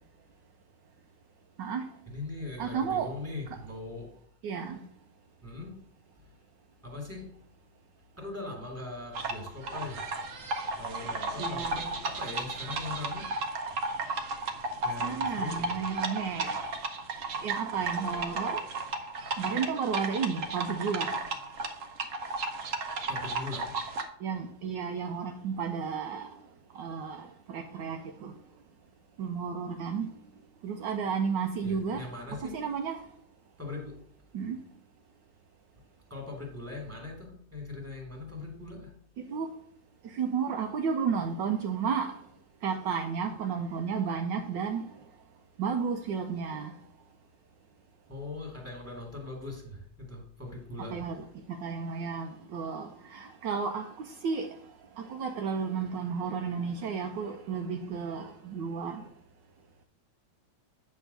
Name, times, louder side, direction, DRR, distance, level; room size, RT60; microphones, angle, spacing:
voice 1, 2.1-4.1 5.4-5.7 6.2-6.3 6.8-7.3 8.2-10.0 10.8-13.3 14.8-15.8 23.1-23.7 31.6-32.5 33.6-33.9 36.1-38.9 48.1-51.1, left 2 dB, 5° right, 2.0 m, -40 dB
voice 2, 2.6-3.1 4.4-4.8 11.4-11.9 15.0-16.6 17.4-18.6 19.4-21.1 24.2-26.3 26.7-28.3 29.2-30.1 30.6-32.0 32.4-33.0 34.3-34.6 39.3-39.5 40.1-42.1 42.6-44.8 45.6-46.7 50.8-51.2 51.5-54.5 55.1-59.0, right 6 dB, 75° right, 1.2 m, -32 dB
sound 1, 9.2-24.0, right 3 dB, 55° right, 1.0 m, -34 dB
8.5 x 3.5 x 6.7 m
omnidirectional pair, 2.1 m